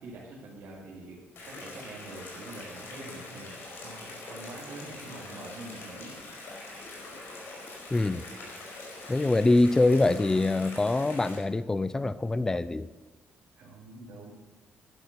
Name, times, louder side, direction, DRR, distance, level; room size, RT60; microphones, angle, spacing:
voice 1, 0.0-6.1 13.6-14.3, right 2 dB, 75° right, -7 dB, 2.7 m, -45 dB
sound 1, 1.4-11.4, left 2 dB, 75° left, 4.7 m, -43 dB
voice 2, 7.9-8.3 9.1-12.9, left 2 dB, 15° left, 15 dB, 0.4 m, -24 dB
11.5 x 11.0 x 5.3 m, 1.2 s
cardioid pair, 105°, 4 cm